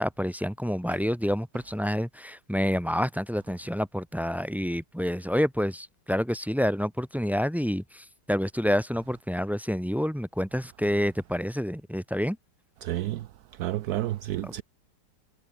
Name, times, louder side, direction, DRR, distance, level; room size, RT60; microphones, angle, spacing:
voice 1, 0.0-12.4 14.4-14.5, equal, ahead, 0.7 m, -28 dB
voice 2, 12.8-13.2 13.6-14.6, right 14 dB, 70° right, 1.1 m, -30 dB
omnidirectional pair, 1.8 m